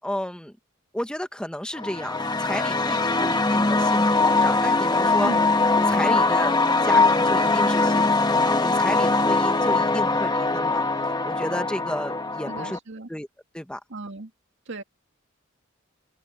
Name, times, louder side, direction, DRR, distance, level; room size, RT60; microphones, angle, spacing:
voice 1, 0.0-0.5 0.9-5.3 5.7-10.9 11.2-12.8 13.1-13.3 13.5-13.8, left 1 dB, 5° left, 1.1 m, -32 dB
sound 1, 1.7-12.8, left 3 dB, 20° left, 1.1 m, -21 dB
voice 2, 12.5-13.1 13.9-14.3 14.7-14.8, right 2 dB, 65° right, 2.4 m, -35 dB
head